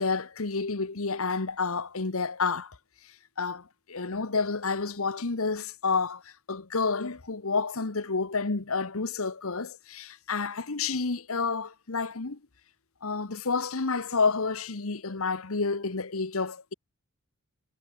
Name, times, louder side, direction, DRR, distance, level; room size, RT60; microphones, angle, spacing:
voice 1, 0.0-2.8 3.4-12.4 13.0-16.7, left 4 dB, 75° left, 1.2 m, -30 dB
head